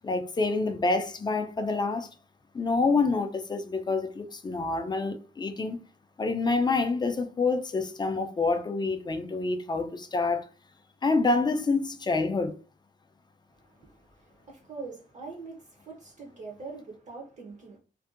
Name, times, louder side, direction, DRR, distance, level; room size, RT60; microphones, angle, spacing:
voice 1, 0.0-2.1 2.5-5.8 6.2-10.5 11.0-12.6, left 3 dB, 25° left, 0.3 m, -27 dB
voice 2, 13.5-17.8, right 4 dB, 45° right, 0.6 m, -43 dB
2.6 x 2.2 x 2.4 m
wide cardioid pair, 150°, 18 cm